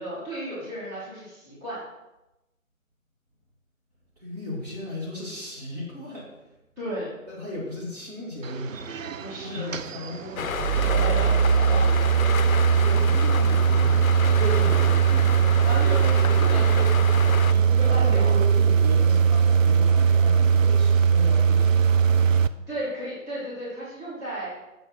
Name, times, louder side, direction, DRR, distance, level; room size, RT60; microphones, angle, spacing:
voice 1, 0.0-1.8 6.8-7.1 9.2-9.7 11.0-12.1 14.4-15.1 15.6-18.3 22.7-24.5, right 1 dB, 10° right, -12 dB, 2.3 m, -34 dB
voice 2, 4.2-6.5 7.3-8.9 9.4-10.5 12.8-15.6 17.9-21.9, left 1 dB, 30° right, -7 dB, 2.4 m, -35 dB
sound 1, 8.4-22.5, right 7 dB, 70° right, 0.5 m, -20 dB
sound 2, 10.4-17.5, left 7 dB, 75° left, 0.5 m, -31 dB
6.8 x 5.3 x 5.9 m, 0.96 s
figure-of-eight pair, 155°, 42 cm